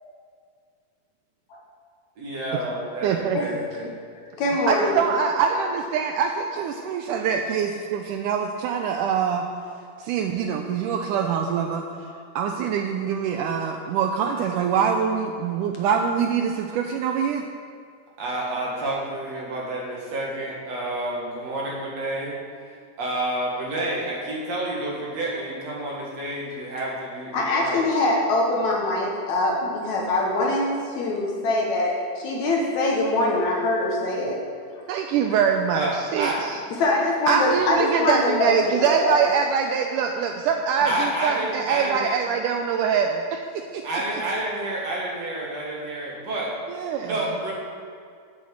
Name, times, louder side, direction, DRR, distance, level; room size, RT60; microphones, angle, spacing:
voice 1, 2.2-3.8 18.2-22.3 22.7-27.8 35.7-36.5 40.8-42.1 43.8-46.5 47.0-47.5, right 1 dB, 50° right, -4 dB, 2.8 m, -29 dB
voice 2, 3.0-3.4 3.9-4.0 4.7-9.4 10.0-11.8 12.4-17.4 34.9-36.6 37.3-43.8 46.7-47.2, right 7 dB, 80° right, 4 dB, 1.9 m, -24 dB
voice 3, 4.1-5.0 8.7-8.8 12.1-12.2 27.3-34.5 34.7-34.8 36.8-39.3, left 2 dB, 65° left, -1 dB, 2.1 m, -23 dB
8.5 x 7.5 x 7.3 m, 2.2 s
omnidirectional pair, 4.1 m